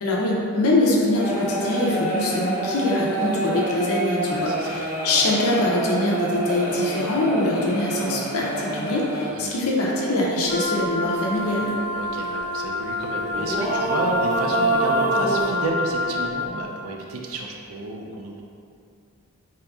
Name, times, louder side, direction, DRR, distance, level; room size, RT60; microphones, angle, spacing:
voice 1, 0.0-11.8, left 1 dB, 80° left, -3 dB, 0.5 m, -23 dB
sound 1, 1.1-9.3 10.4-10.5 11.3-11.7 12.0-12.1 13.3-15.4, right 2 dB, 5° right, 0.6 m, -27 dB
voice 2, 4.3-4.8 9.3-9.6 11.9-18.4, right 2 dB, 75° right, 0 dB, 0.4 m, -31 dB
Wind instrument woodwind instrument, 10.5-16.5, left 2 dB, 45° left, 0.7 m, -28 dB
2.9 x 2.4 x 3.4 m, 2.4 s
head